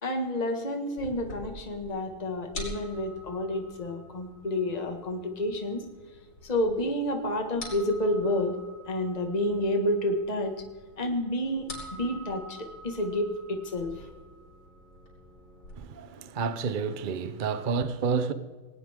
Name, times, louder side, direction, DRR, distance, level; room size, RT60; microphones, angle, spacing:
voice 1, 0.0-5.8 6.4-8.5 8.9-10.5 11.0-12.6 12.8-13.9, left 1 dB, 20° left, 1.7 m, -29 dB
sound 1, 1.0-15.8, equal, 80° left, 5.2 m, -46 dB
voice 2, 15.8-18.3, right 5 dB, 80° right, 0.4 m, -29 dB
19.0 x 18.5 x 3.7 m
omnidirectional pair, 2.2 m